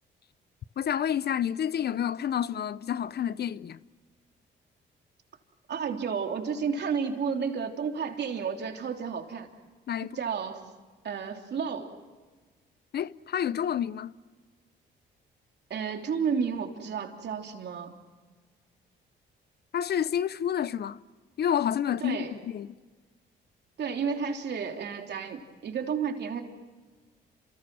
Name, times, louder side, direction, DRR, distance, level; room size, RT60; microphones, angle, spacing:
voice 1, 0.8-3.8 9.9-10.2 12.9-14.1 19.7-21.0 21.4-22.8, left 9 dB, 55° left, 0.7 m, -29 dB
voice 2, 5.7-9.5 10.1-10.6 11.0-11.9 15.7-18.0 22.0-22.3 23.8-26.4, right 6 dB, 60° right, 3.3 m, -31 dB
29.5 x 27.5 x 6.2 m
cardioid pair, 90°, 20 cm